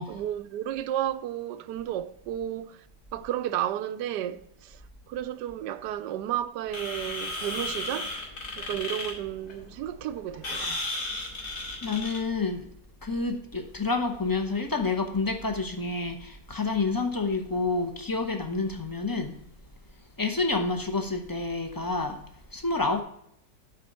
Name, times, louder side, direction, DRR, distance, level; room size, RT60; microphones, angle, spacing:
voice 1, 0.1-2.8 3.1-4.8 5.1-8.1 8.6-10.8, right 11 dB, 75° right, 1.1 m, -32 dB
sound 1, 6.7-12.3, left 2 dB, 50° left, 2.7 m, -35 dB
voice 2, 11.8-12.7 13.0-19.3 20.2-22.2 22.5-23.0, left 3 dB, 20° left, 0.5 m, -28 dB
9.4 x 4.1 x 5.4 m
omnidirectional pair, 1.9 m